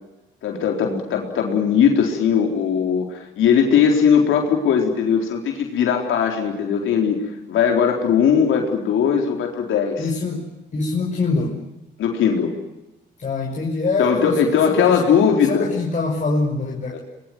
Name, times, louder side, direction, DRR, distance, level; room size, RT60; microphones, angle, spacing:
voice 1, 0.4-7.2 7.5-10.1 12.0-12.5 14.0-15.7 16.9-17.0, left 7 dB, 80° left, 2 dB, 4.2 m, -19 dB
voice 2, 10.0-10.5 10.7-11.6 13.2-14.4 14.7-15.0 15.4-17.0, left 3 dB, 40° left, -1 dB, 6.0 m, -24 dB
24.0 x 22.0 x 9.5 m, 0.98 s
cardioid pair, 90°, 20 cm